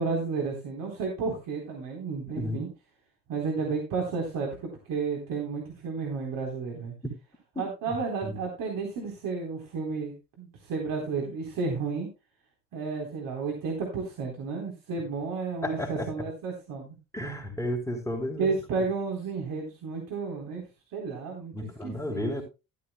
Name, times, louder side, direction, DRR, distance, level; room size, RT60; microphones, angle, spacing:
voice 1, 0.0-2.7 3.3-6.9 7.6-12.1 12.7-17.0 18.4-20.6 20.9-22.2, right 4 dB, 60° right, 3.7 m, -32 dB
voice 2, 2.4-2.7 7.0-7.1 8.2-8.4 15.6-16.1 17.1-18.5 21.5-22.4, equal, 10° left, 4.2 m, -32 dB
13.5 x 12.5 x 2.2 m
hypercardioid pair, 70°, 38 cm